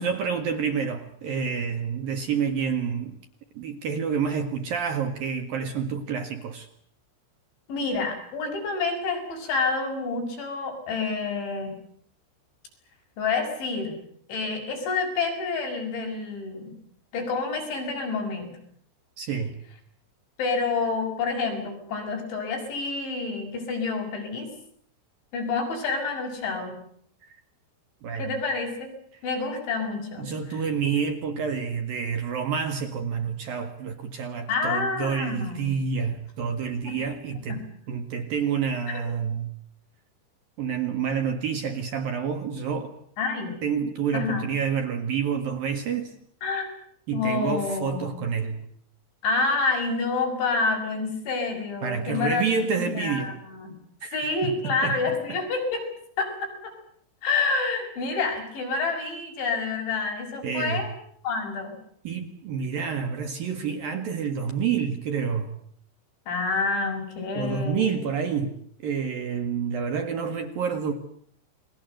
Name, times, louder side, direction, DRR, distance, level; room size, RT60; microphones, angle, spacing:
voice 1, 0.0-3.2 3.5-6.7 19.2-19.6 28.0-28.3 30.2-39.5 40.6-43.0 43.6-46.2 47.1-48.7 51.8-53.4 54.0-55.4 60.4-60.9 62.0-65.6 67.3-70.9, right 6 dB, 55° right, 3.0 m, -28 dB
voice 2, 7.7-11.7 13.2-13.9 14.3-16.7 17.1-18.6 20.4-24.5 25.3-26.8 28.2-28.9 29.2-30.6 34.5-35.6 36.8-37.0 37.5-37.6 38.9-39.0 43.2-43.6 44.1-44.5 46.4-46.7 47.1-48.1 49.2-53.8 54.1-55.9 56.2-56.7 57.2-60.9 61.2-61.8 66.3-67.9, left 4 dB, 65° left, 8.5 m, -28 dB
29.5 x 22.0 x 8.0 m
omnidirectional pair, 5.7 m